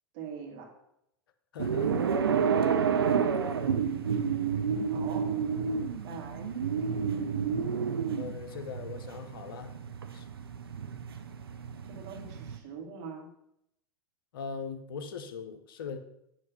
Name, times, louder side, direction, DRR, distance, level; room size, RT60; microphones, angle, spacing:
voice 1, 0.1-0.7 4.9-5.3 6.0-6.5 11.8-13.3, right 6 dB, 45° right, 1 dB, 1.7 m, -43 dB
voice 2, 1.5-2.1 3.9-4.1 6.1-6.2 8.1-9.7 10.1-10.2 14.3-16.0, left 5 dB, 60° left, 9 dB, 0.7 m, -40 dB
sound 1, 1.6-12.6, right 6 dB, 75° right, 0.6 m, -30 dB
8.7 x 3.2 x 5.4 m, 0.77 s
figure-of-eight pair, 85°, 13 cm